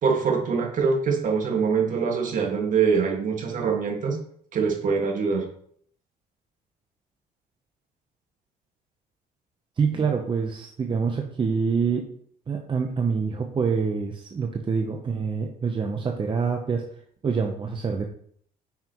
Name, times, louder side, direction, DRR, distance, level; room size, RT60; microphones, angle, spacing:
voice 1, 0.0-4.2 4.5-5.5 9.9-10.1, right 5 dB, 50° right, 2 dB, 1.8 m, -24 dB
voice 2, 9.8-12.1 12.5-16.8 17.2-18.1, right 5 dB, 30° right, 3 dB, 0.8 m, -26 dB
9.1 x 5.8 x 3.0 m, 0.63 s
cardioid pair, 110°, 17 cm